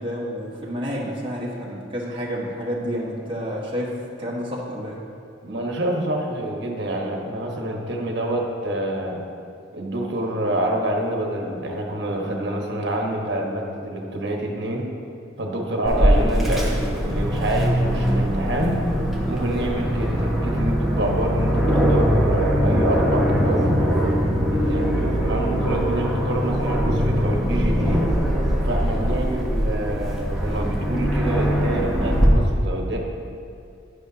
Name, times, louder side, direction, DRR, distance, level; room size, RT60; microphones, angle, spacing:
voice 1, 0.0-5.0, equal, 25° right, -4 dB, 1.4 m, -29 dB
voice 2, 5.4-9.2 9.7-14.9 15.4-18.8 19.2-23.8 24.5-28.1 28.6-33.0, right 1 dB, 60° right, 0 dB, 1.3 m, -27 dB
Aircraft, 15.8-32.3, equal, ahead, 1.1 m, -22 dB
10.0 x 10.0 x 2.9 m, 2.4 s
head